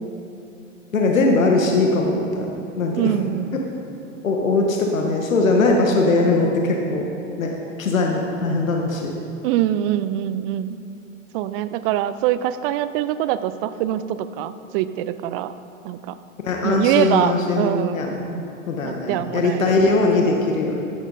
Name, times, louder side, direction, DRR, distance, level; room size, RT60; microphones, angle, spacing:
voice 1, 0.9-2.5 2.8-3.1 4.2-7.0 7.4-7.5 7.8-9.1 16.4-20.8, left 3 dB, 80° left, 1 dB, 1.6 m, -20 dB
voice 2, 3.0-3.6 9.4-10.8 11.3-15.5 15.8-16.2 16.6-18.2 18.8-20.0, right 12 dB, 45° right, 14 dB, 0.6 m, -24 dB
16.0 x 11.5 x 4.1 m, 2.7 s
figure-of-eight pair, 90°, 40 cm